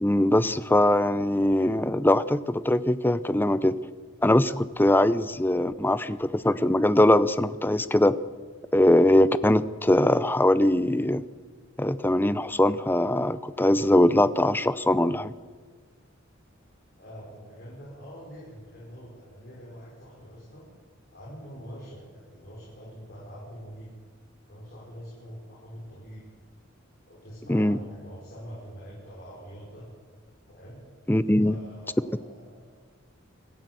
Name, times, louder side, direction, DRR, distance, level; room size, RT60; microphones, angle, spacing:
voice 1, 0.0-3.8 4.2-8.2 8.7-11.2 11.8-15.3 27.5-27.8 31.1-31.6, left 1 dB, 10° left, 15 dB, 0.6 m, -22 dB
voice 2, 17.0-20.7 21.1-23.9 24.5-26.3 27.1-29.9 30.5-30.8 31.3-32.7, equal, 50° left, -5 dB, 5.8 m, -44 dB
25.0 x 15.0 x 7.9 m, 1.5 s
head